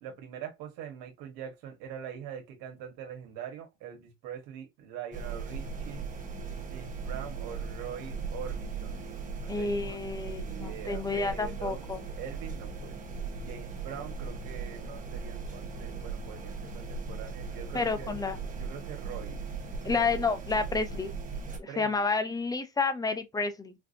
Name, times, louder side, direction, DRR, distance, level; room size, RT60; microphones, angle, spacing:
voice 1, 0.0-6.0 6.6-9.1 9.4-11.8 12.1-13.0 13.4-18.1 18.6-19.4 19.9-20.1 21.7-22.1, right 9 dB, 70° right, 1.4 m, -43 dB
sound 1, 5.1-21.6, right 4 dB, 20° right, 1.0 m, -38 dB
voice 2, 9.5-12.0 17.7-18.4 19.8-21.1 21.6-23.7, left 4 dB, 10° left, 0.5 m, -30 dB
4.2 x 2.7 x 2.6 m
cardioid pair, 145°, 35 cm